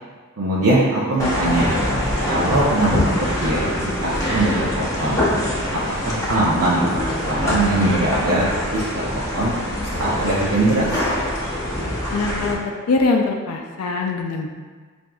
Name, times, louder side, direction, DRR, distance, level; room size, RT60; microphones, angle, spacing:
voice 1, 0.4-1.7 2.3-3.1 3.4-5.2 5.9-9.5 9.9-11.0, right 2 dB, 75° right, -7 dB, 0.6 m, -21 dB
sound 1, 1.2-12.5, left 1 dB, 15° left, 0.7 m, -24 dB
voice 2, 12.1-12.6 12.9-14.5, left 3 dB, 70° left, 2 dB, 0.4 m, -22 dB
5.9 x 2.6 x 2.3 m, 1.5 s
head